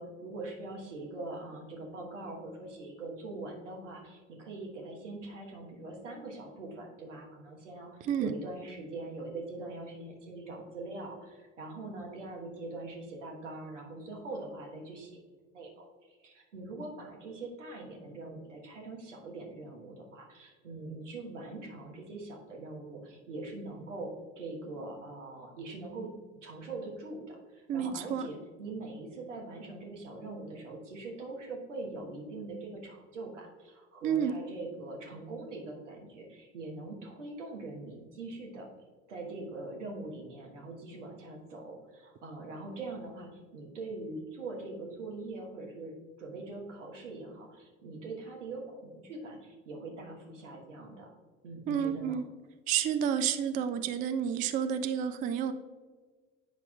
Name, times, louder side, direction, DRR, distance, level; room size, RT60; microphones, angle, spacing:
voice 1, 0.0-15.3 15.5-26.1 26.4-38.7 39.1-51.1 51.4-52.2, right 2 dB, 75° right, 0 dB, 1.3 m, -42 dB
voice 2, 8.0-8.3 27.7-28.3 34.0-34.4 51.7-52.2 52.7-55.5, right 8 dB, 25° right, 10 dB, 0.3 m, -30 dB
8.6 x 5.8 x 2.3 m, 1.4 s
figure-of-eight pair, 65°, 37 cm